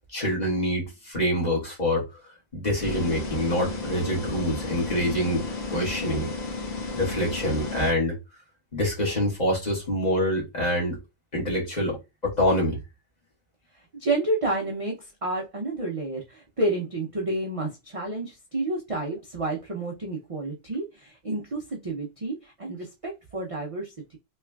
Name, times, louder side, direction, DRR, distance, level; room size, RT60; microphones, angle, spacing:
voice 1, 0.1-2.0 2.5-6.3 6.9-8.1 8.7-11.0 11.3-12.0 12.2-12.8, left 1 dB, 30° left, 1.7 m, -26 dB
sound 1, 2.8-7.9, left 3 dB, 65° left, 1.5 m, -33 dB
voice 2, 13.7-24.2, right 2 dB, 40° right, 0.5 m, -30 dB
3.5 x 3.2 x 2.2 m
omnidirectional pair, 1.4 m